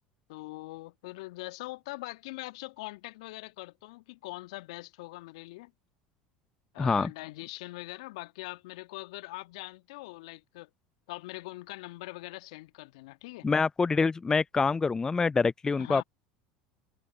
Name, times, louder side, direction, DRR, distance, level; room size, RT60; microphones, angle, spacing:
voice 1, 0.3-5.7 6.7-10.7 11.1-13.5 15.8-16.0, left 21 dB, 65° left, 1.6 m, -42 dB
voice 2, 6.8-7.1 13.4-16.0, left 4 dB, 20° left, 0.3 m, -26 dB
hypercardioid pair, 75°, 3 cm